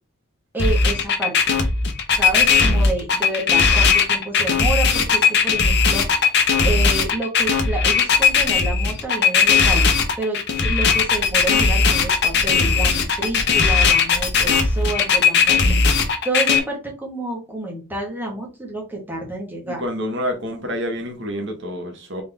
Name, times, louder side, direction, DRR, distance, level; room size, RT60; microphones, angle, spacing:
voice 1, 0.5-1.6 2.2-6.3 6.6-15.8 16.2-19.8, right 2 dB, 10° right, 1.5 m, -29 dB
sound 1, 0.6-16.6, left 5 dB, 50° left, 0.9 m, -17 dB
voice 2, 19.6-22.2, equal, 55° right, 1.3 m, -28 dB
4.0 x 3.7 x 3.5 m
head